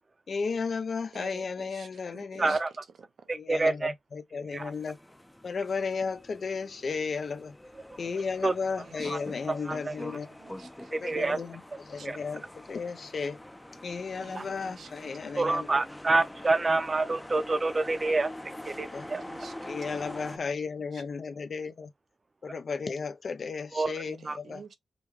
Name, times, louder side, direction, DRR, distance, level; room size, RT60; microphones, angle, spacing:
voice 1, 0.3-2.6 3.3-5.0 5.4-7.6 8.0-10.3 10.9-13.4 13.8-15.7 18.9-19.1 19.7-21.9 22.4-24.6, left 5 dB, 55° left, 0.5 m, -34 dB
voice 2, 1.1-2.6 3.2-3.3 8.8-11.1 12.0-12.1 14.2-14.9 15.2-15.5 19.1-19.5 19.9-20.5 20.9-21.0 24.0-24.8, right 6 dB, 70° right, 0.6 m, -50 dB
voice 3, 2.4-2.7 3.3-3.9 4.5-4.7 8.4-8.5 9.1-9.2 9.7-9.9 10.9-11.4 12.0-12.2 14.3-14.4 15.4-18.3 18.7-19.2 23.7-23.9 24.3-24.4, right 3 dB, 30° right, 0.6 m, -27 dB
sound 1, 4.5-20.4, left 1 dB, 10° left, 0.5 m, -45 dB
5.2 x 2.2 x 3.0 m
wide cardioid pair, 115°, 0 cm